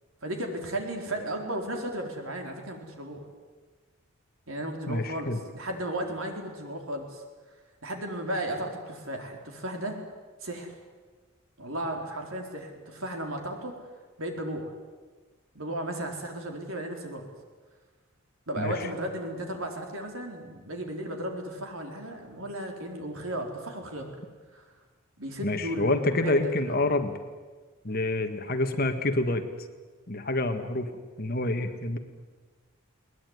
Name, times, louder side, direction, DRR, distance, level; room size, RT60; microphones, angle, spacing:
voice 1, 0.2-3.2 4.5-7.2 7.8-10.0 10.4-10.7 11.6-13.8 14.2-14.7 15.5-17.3 18.5-24.1 24.5-24.6 25.2-26.9, right 1 dB, 75° right, 3 dB, 4.3 m, -35 dB
voice 2, 4.9-5.4 18.6-18.8 25.4-27.1 27.8-29.4 30.1-30.9 31.2-32.0, left 2 dB, 45° left, 7 dB, 1.9 m, -27 dB
21.5 x 20.0 x 9.7 m, 1.4 s
head